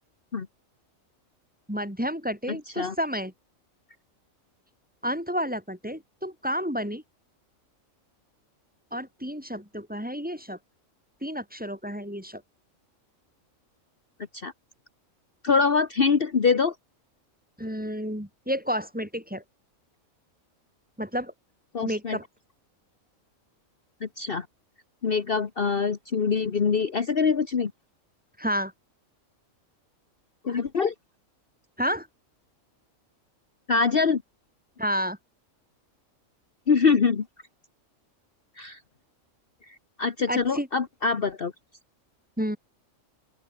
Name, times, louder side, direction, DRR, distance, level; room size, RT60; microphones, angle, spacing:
voice 1, 1.7-3.3 5.0-7.0 8.9-10.6 11.2-12.4 17.6-19.4 21.0-21.3 21.8-22.3 28.4-28.7 31.8-32.1 34.8-35.2 40.3-40.7 42.4-42.6, equal, 5° right, 3.8 m, -30 dB
voice 2, 2.5-2.9 14.3-14.5 15.4-16.7 21.7-22.2 24.0-24.5 25.0-27.7 30.4-30.9 33.7-34.2 36.7-37.3 38.6-38.8 39.7-41.5, left 5 dB, 45° left, 1.4 m, -24 dB
open air
omnidirectional pair, 1.4 m